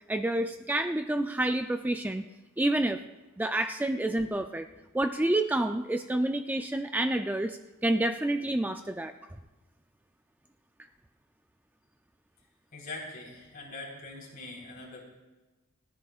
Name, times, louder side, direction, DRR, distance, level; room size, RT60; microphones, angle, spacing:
voice 1, 0.1-2.3 2.6-3.0 3.4-4.7 4.9-9.1, right 1 dB, 10° right, 7 dB, 0.3 m, -28 dB
voice 2, 12.7-15.0, left 2 dB, 45° left, -3 dB, 3.9 m, -42 dB
29.0 x 10.0 x 2.4 m, 1.2 s
head